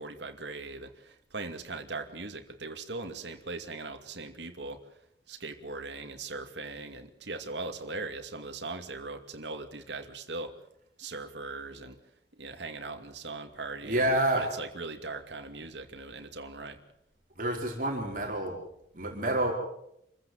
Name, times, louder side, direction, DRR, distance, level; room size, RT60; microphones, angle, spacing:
voice 1, 0.0-4.8 5.3-10.5 11.0-12.0 12.4-16.8, right 3 dB, 75° right, 5 dB, 2.5 m, -40 dB
voice 2, 13.8-14.4 17.4-18.6 18.9-19.5, right 1 dB, 45° right, 0 dB, 4.6 m, -28 dB
27.5 x 15.5 x 7.7 m, 0.79 s
head